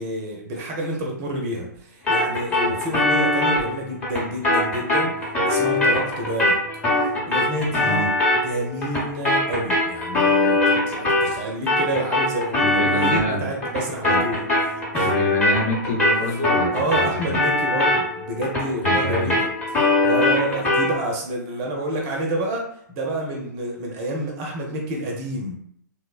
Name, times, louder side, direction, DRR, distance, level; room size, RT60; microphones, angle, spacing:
voice 1, 0.0-6.6 7.0-8.1 8.4-15.2 16.7-25.6, right 1 dB, 30° right, 0 dB, 0.5 m, -29 dB
sound 1, 2.1-11.4 11.7-21.0, left 2 dB, 10° left, 0.8 m, -22 dB
voice 2, 7.7-8.1 12.6-13.5 14.0-14.2 15.0-17.4 18.8-19.4, left 1 dB, 45° left, -2 dB, 0.8 m, -27 dB
3.1 x 2.0 x 2.3 m, 0.68 s
figure-of-eight pair, 115°, 10 cm